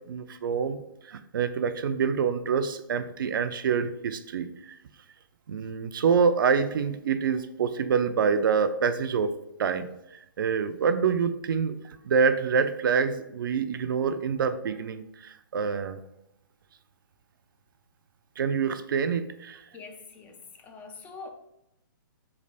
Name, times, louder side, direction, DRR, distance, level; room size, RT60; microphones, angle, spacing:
voice 1, 0.1-0.8 1.0-4.7 5.5-9.3 9.6-9.9 10.4-11.8 12.0-16.0 18.4-19.6, right 6 dB, 75° right, 10 dB, 0.4 m, -26 dB
voice 2, 19.7-21.3, left 4 dB, 15° left, 4 dB, 0.4 m, -44 dB
3.2 x 2.5 x 3.9 m, 0.83 s
hypercardioid pair, 140°, 11 cm